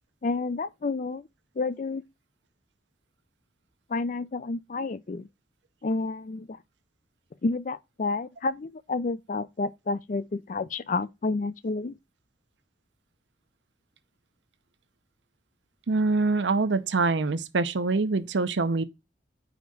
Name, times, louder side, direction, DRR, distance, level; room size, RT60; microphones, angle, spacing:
voice 1, 0.2-1.3 1.6-2.0 3.9-5.3 5.8-6.6 7.4-12.0, left 3 dB, 45° left, 0.4 m, -30 dB
voice 2, 15.9-18.8, right 3 dB, 75° right, 0.7 m, -25 dB
5.0 x 4.7 x 5.3 m
head